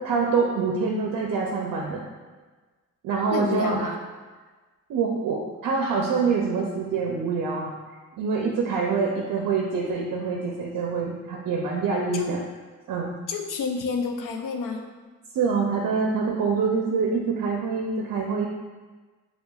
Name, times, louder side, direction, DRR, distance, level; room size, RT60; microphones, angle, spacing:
voice 1, 0.0-2.0 3.0-3.9 4.9-7.7 8.2-12.4 12.9-13.1 15.3-18.5, right 5 dB, 75° right, -1 dB, 0.5 m, -25 dB
voice 2, 3.3-3.9 12.1-12.4 13.3-14.8, left 5 dB, 70° left, 3 dB, 0.5 m, -29 dB
5.5 x 2.3 x 2.3 m, 1.3 s
cardioid pair, 85°, 33 cm